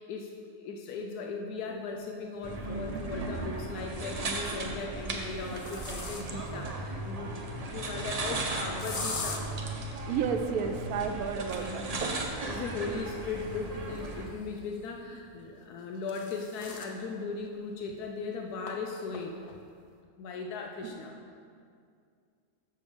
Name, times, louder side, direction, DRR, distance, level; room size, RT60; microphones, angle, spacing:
voice 1, 0.0-9.5 11.4-12.0 12.5-19.6 20.2-21.1, left 4 dB, 85° left, 2 dB, 1.2 m, -38 dB
sound 1, 2.4-2.5 4.0-4.4 5.0-6.6 8.8-9.4 12.0-14.6 15.6-17.0 17.4-17.5 17.9-18.0 18.7-18.8 19.1-19.5, left 3 dB, 55° left, 0.4 m, -42 dB
sound 2, 2.4-14.3, right 2 dB, 40° right, 0.5 m, -36 dB
voice 2, 10.1-11.9 20.8-20.9, right 6 dB, 75° right, 6 dB, 1.0 m, -31 dB
6.9 x 6.5 x 5.2 m, 2.3 s
omnidirectional pair, 1.6 m